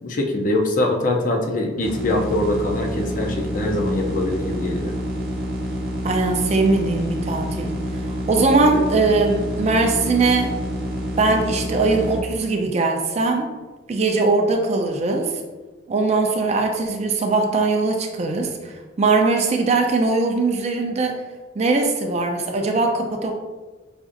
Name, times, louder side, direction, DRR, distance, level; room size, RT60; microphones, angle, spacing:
voice 1, 0.0-4.9, left 1 dB, 45° left, 2 dB, 0.5 m, -23 dB
sound 1, 1.8-12.2, equal, 50° right, 0.7 m, -28 dB
voice 2, 6.0-7.7 8.0-10.5 11.2-13.5 13.9-15.3 15.9-21.2 21.6-23.3, right 3 dB, 35° right, 3 dB, 0.4 m, -20 dB
5.0 x 2.4 x 2.5 m, 1.2 s
head